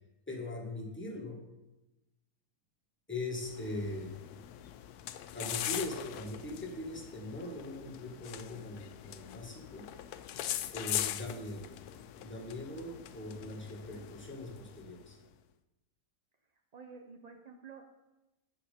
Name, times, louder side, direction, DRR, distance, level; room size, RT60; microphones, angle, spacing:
voice 1, 0.3-1.4 3.1-4.1 5.3-9.9 10.7-11.7 12.2-15.2, left 2 dB, 10° left, 0 dB, 1.5 m, -41 dB
sound 1, 3.3-15.1, left 12 dB, 80° left, 1.1 m, -41 dB
voice 2, 16.5-17.9, right 5 dB, 50° right, 3 dB, 0.5 m, -51 dB
8.7 x 7.4 x 5.0 m, 1.0 s
omnidirectional pair, 1.7 m